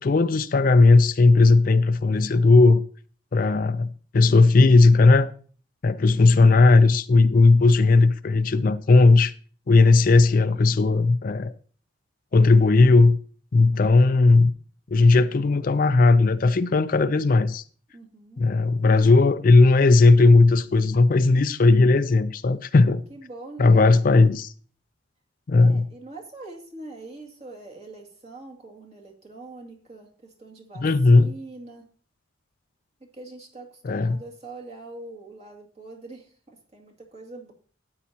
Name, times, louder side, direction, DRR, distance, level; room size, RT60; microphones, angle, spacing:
voice 1, 0.0-2.8 3.3-5.3 5.8-9.3 9.7-11.5 12.3-13.2 13.5-14.5 14.9-17.6 18.4-23.0 23.6-24.5 25.5-25.9 30.8-31.3 33.8-34.2, left 3 dB, 45° left, 0.4 m, -17 dB
voice 2, 17.9-18.4 23.1-23.9 25.6-31.8 33.0-37.5, right 2 dB, 35° right, 2.2 m, -43 dB
12.5 x 9.2 x 2.8 m
head